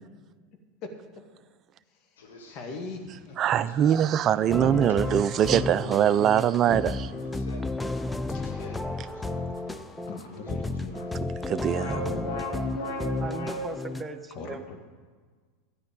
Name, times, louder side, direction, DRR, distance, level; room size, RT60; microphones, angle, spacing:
sound 1, 2.2-2.6 3.3-11.1 11.4-13.8, left 1 dB, 80° left, 1.7 m, -40 dB
voice 1, 2.2-3.7 4.6-4.9 6.7-7.1 8.3-8.9 10.1-11.0 14.3-14.8, left 3 dB, 50° left, 5 dB, 2.0 m, -41 dB
voice 2, 3.4-6.9 11.2-12.3, right 10 dB, 40° right, 15 dB, 0.5 m, -23 dB
sound 2, 4.5-14.0, left 2 dB, 10° left, 0.6 m, -32 dB
voice 3, 13.2-14.8, right 4 dB, 15° right, 6 dB, 1.1 m, -38 dB
13.5 x 9.2 x 5.2 m, 1.5 s
hypercardioid pair, 95°, 0 cm